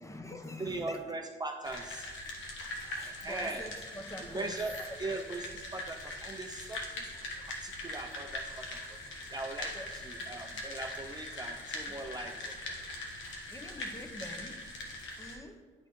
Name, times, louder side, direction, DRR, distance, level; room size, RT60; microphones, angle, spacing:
voice 1, 0.0-1.1 2.9-4.6 4.9-5.2 8.5-8.7 9.7-9.9 10.2-10.3 11.9-12.0 13.5-14.8 15.2-15.7, left 1 dB, 15° left, 6 dB, 0.7 m, -46 dB
voice 2, 0.6-2.1 3.0-3.6 4.2-4.7 5.0-5.5 5.7-7.1 7.5-9.0 9.3-12.6, right 2 dB, 20° right, 3 dB, 0.4 m, -40 dB
sound 1, 1.6-15.4, left 1 dB, 75° left, 1.2 m, -42 dB
10.5 x 4.1 x 3.1 m, 1.5 s
cardioid pair, 90°, 20 cm